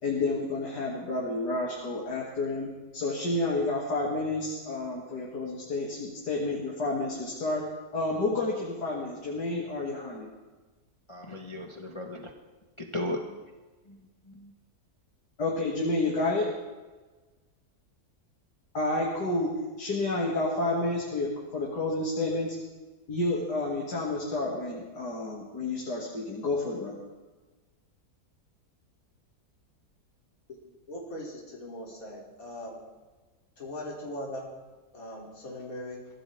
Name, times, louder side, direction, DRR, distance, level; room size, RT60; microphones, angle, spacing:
voice 1, 0.0-7.7 7.9-10.3 15.4-16.5 18.7-22.5 23.1-27.0, left 2 dB, 85° left, -4 dB, 3.2 m, -30 dB
voice 2, 11.1-12.3 12.8-13.4 13.9-14.5, left 1 dB, 20° left, 2 dB, 1.2 m, -37 dB
voice 3, 30.9-32.8 33.6-34.4 34.9-36.0, left 1 dB, 60° left, -3 dB, 3.7 m, -39 dB
24.0 x 16.0 x 3.6 m, 1.3 s
omnidirectional pair, 1.7 m